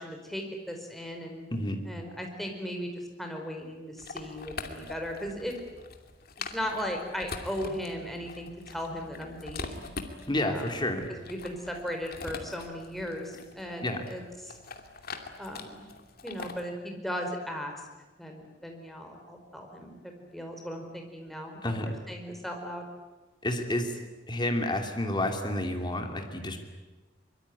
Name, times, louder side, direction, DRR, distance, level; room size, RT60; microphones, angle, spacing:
voice 1, 0.0-1.5 1.8-5.5 6.5-9.9 10.4-10.8 11.3-14.6 15.4-15.8 16.2-17.7 18.2-19.9 20.3-22.8, equal, ahead, 2 dB, 4.8 m, -37 dB
sound 1, 4.0-16.6, left 4 dB, 50° left, 2.6 m, -43 dB
voice 2, 10.3-11.0 13.8-14.0 21.6-21.9 23.4-23.9 24.3-26.6, left 1 dB, 25° left, 3 dB, 2.8 m, -29 dB
24.0 x 23.0 x 9.7 m, 1.2 s
head